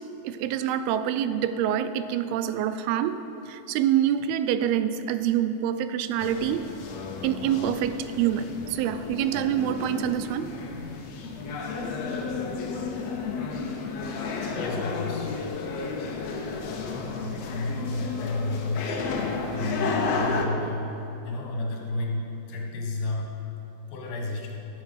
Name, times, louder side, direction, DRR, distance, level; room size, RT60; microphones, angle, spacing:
voice 1, 0.2-3.2 3.5-6.7 7.2-10.5, right 10 dB, 85° right, 12 dB, 2.4 m, -26 dB
sound 1, 6.2-20.5, left 4 dB, 85° left, 1.4 m, -32 dB
voice 2, 14.5-15.3 16.1-16.2 16.9-19.0 19.5-20.9 21.2-23.3 23.9-24.6, left 2 dB, 70° left, -1 dB, 3.1 m, -32 dB
14.5 x 8.2 x 5.1 m, 2.9 s
omnidirectional pair, 4.4 m